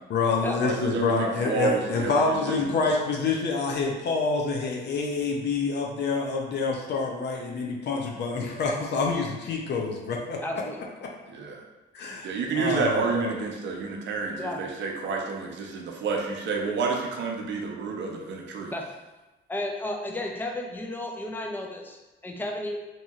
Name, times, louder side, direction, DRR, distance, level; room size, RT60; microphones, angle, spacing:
voice 1, 0.1-10.4 11.9-13.3, left 4 dB, 60° left, -1 dB, 0.5 m, -27 dB
voice 2, 0.6-2.9 11.3-11.6 12.2-18.7, right 4 dB, 65° right, 0 dB, 0.6 m, -29 dB
voice 3, 10.4-10.8 14.4-14.6 18.7-18.8 19.5-22.8, left 1 dB, 10° left, 1 dB, 0.4 m, -33 dB
2.8 x 2.7 x 2.3 m, 1.1 s
cardioid pair, 90°, 20 cm